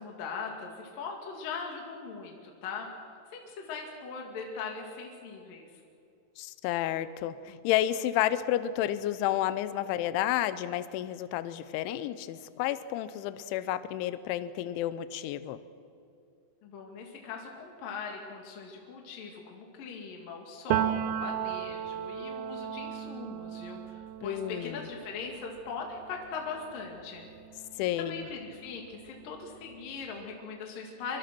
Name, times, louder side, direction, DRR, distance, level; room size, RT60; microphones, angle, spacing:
voice 1, 0.0-2.9 3.3-5.7 16.6-27.3 28.0-31.2, left 5 dB, 50° left, 1 dB, 3.5 m, -40 dB
voice 2, 6.4-15.6 24.2-24.9 27.8-28.3, left 12 dB, 80° left, 13 dB, 3.1 m, -31 dB
Piano, 20.7-28.3 28.7-30.2, right 10 dB, 75° right, 2.9 m, -36 dB
25.5 x 24.0 x 6.1 m, 2.5 s
omnidirectional pair, 5.5 m